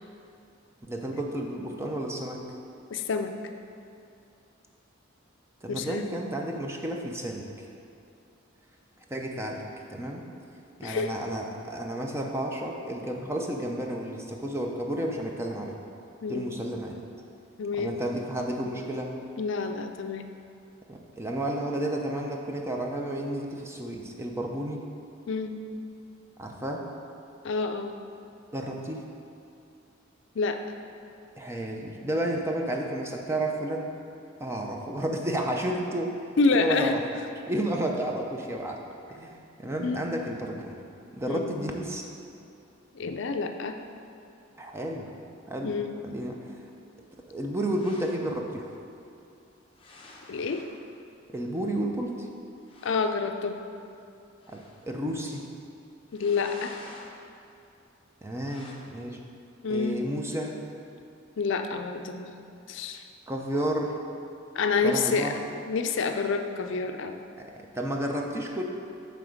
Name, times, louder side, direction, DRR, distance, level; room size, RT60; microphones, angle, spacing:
voice 1, 0.9-2.4 5.6-7.7 9.1-9.6 9.9-10.2 10.8-15.7 16.3-17.0 17.8-19.1 20.9-24.8 26.4-26.9 28.5-29.0 31.4-33.9 34.4-36.1 36.5-36.9 37.4-38.8 39.1-40.8 41.1-42.0 44.6-45.1 45.5-45.7 46.0-46.4 47.3-48.7 51.3-52.3 54.5-55.5 58.2-59.2 59.7-60.6 63.3-64.0 64.8-65.3 67.4-68.6, right 1 dB, 15° right, 1 dB, 0.6 m, -31 dB
voice 2, 2.9-3.3 5.7-6.1 10.8-11.1 16.2-16.5 17.6-17.9 19.4-20.3 25.3-25.5 27.4-27.9 30.3-30.6 36.4-37.0 39.8-40.2 41.3-41.6 42.9-43.8 45.6-45.9 50.3-50.6 52.8-53.6 56.1-56.8 59.6-60.0 61.4-63.0 64.5-65.3 65.7-67.2, left 4 dB, 65° left, 6 dB, 0.4 m, -28 dB
sound 1, 47.7-48.3 49.7-50.8 52.0-52.1 52.3-52.4 52.6-53.1 54.4-54.9 56.1-57.2 58.4-58.7, left 2 dB, 25° left, 0.9 m, -49 dB
8.9 x 3.5 x 6.3 m, 2.6 s
head